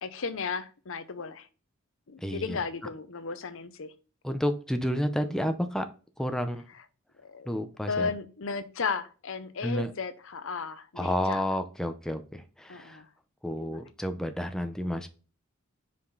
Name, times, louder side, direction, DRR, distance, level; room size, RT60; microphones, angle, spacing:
voice 1, 0.0-1.5 2.1-3.9 7.2-7.6 7.9-11.5 12.7-13.1 13.6-13.8, left 5 dB, 65° left, 11 dB, 0.7 m, -35 dB
voice 2, 2.2-2.6 4.2-5.9 6.2-6.7 7.5-8.1 9.6-9.9 11.0-13.0 13.4-15.1, equal, 5° left, 7 dB, 0.6 m, -30 dB
5.6 x 5.1 x 3.9 m, 0.35 s
head